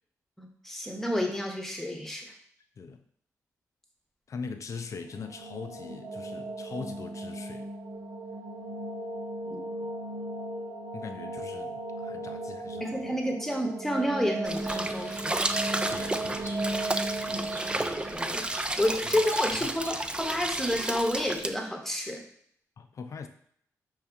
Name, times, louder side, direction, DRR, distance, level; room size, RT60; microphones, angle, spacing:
voice 1, 0.4-2.3 9.5-9.6 12.8-15.4 17.3-17.5 18.1-18.5 18.8-22.2, left 1 dB, 5° left, 2 dB, 1.0 m, -30 dB
voice 2, 4.3-7.7 10.9-13.2 15.9-16.6 19.0-19.2 19.5-19.7 22.8-23.3, left 5 dB, 55° left, 8 dB, 0.5 m, -41 dB
sound 1, 4.9-19.8, right 2 dB, 85° right, 0.6 m, -37 dB
sound 2, 14.4-21.5, right 2 dB, 15° right, 0.3 m, -32 dB
Bird, 14.5-20.8, right 1 dB, 40° right, 1.1 m, -45 dB
4.8 x 2.8 x 3.5 m, 0.64 s
cardioid pair, 60°, 6 cm